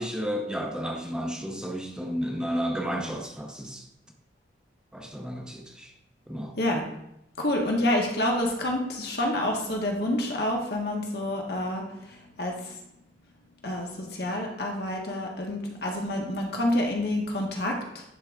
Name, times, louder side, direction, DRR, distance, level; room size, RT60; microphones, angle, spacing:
voice 1, 0.0-3.8 4.9-5.9 6.3-6.5, equal, 5° right, 1 dB, 0.7 m, -32 dB
voice 2, 7.4-12.8 13.6-18.0, left 1 dB, 65° left, 0 dB, 1.4 m, -28 dB
11.0 x 3.8 x 3.6 m, 0.81 s
head